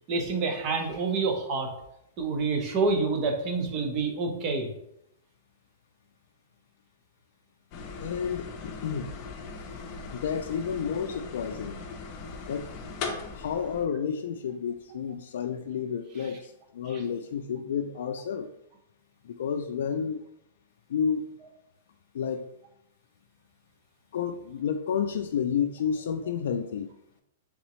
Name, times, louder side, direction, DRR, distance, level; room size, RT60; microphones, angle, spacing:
voice 1, 0.1-1.7 2.2-4.7 16.2-16.3, right 4 dB, 30° right, 2 dB, 0.9 m, -27 dB
sound 1, 7.7-13.9, left 4 dB, 35° left, 0.7 m, -39 dB
voice 2, 8.0-9.1 10.1-11.8 12.5-12.7 13.3-18.5 19.2-20.2 20.9-21.2 22.1-22.5 24.1-26.9, left 7 dB, 70° left, 5 dB, 0.3 m, -30 dB
4.0 x 3.5 x 3.1 m, 0.79 s
hypercardioid pair, 150°, 0 cm